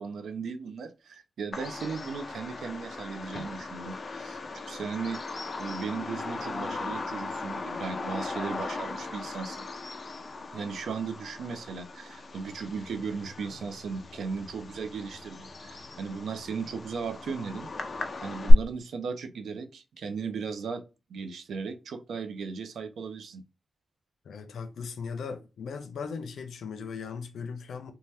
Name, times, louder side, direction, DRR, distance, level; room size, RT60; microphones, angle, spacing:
voice 1, 0.0-4.4 4.7-5.2 5.6-9.7 10.5-17.7 18.2-20.8 21.1-23.4, right 5 dB, 80° right, 0.4 m, -36 dB
Bird vocalization bird call bird song, 1.5-18.5, left 2 dB, 35° left, 0.4 m, -36 dB
voice 2, 24.2-27.9, left 5 dB, 90° left, 0.5 m, -38 dB
2.7 x 2.1 x 3.2 m
wide cardioid pair, 170°, 0 cm